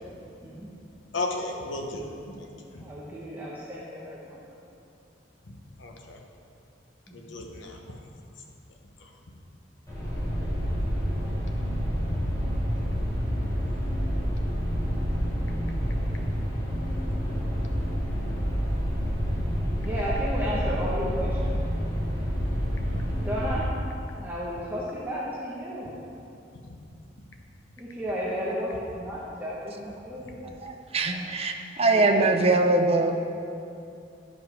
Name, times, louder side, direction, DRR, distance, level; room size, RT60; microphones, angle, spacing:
voice 1, 1.1-2.9 5.5-6.2 7.1-7.8 9.0-9.1 11.2-11.3 15.2-15.3 15.8-15.9 16.7-16.8 19.3-19.6 22.9-23.2 26.6-26.7, left 2 dB, 75° left, 2 dB, 1.0 m, -36 dB
voice 2, 2.8-4.5 7.1-7.3 19.8-21.6 23.2-23.7 24.2-26.0 27.8-30.5 31.1-31.2 31.9-32.3, equal, 10° right, -7 dB, 1.0 m, -33 dB
sound 1, 9.9-23.6, equal, 20° left, 2.1 m, -28 dB
voice 3, 30.6-33.2, right 2 dB, 35° right, 4 dB, 0.6 m, -23 dB
11.5 x 5.3 x 4.7 m, 2.6 s
head